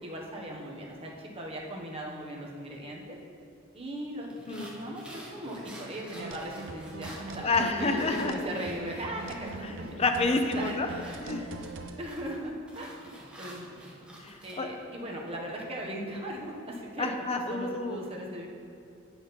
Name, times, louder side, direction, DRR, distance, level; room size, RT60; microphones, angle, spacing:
voice 1, 0.0-3.2 3.7-9.9 10.5-11.4 12.0-13.8 14.4-17.1 17.5-18.5, right 1 dB, 30° right, -2 dB, 1.2 m, -38 dB
sound 1, 4.3-9.6 9.9-14.5, right 1 dB, 5° right, 1.3 m, -49 dB
sound 2, 6.1-12.0, right 3 dB, 65° right, 0.7 m, -42 dB
voice 2, 7.4-8.3 9.6-10.9 11.2-11.4 14.2-14.7 17.0-18.0, left 3 dB, 30° left, 5 dB, 0.6 m, -29 dB
8.6 x 6.3 x 5.2 m, 2.5 s
head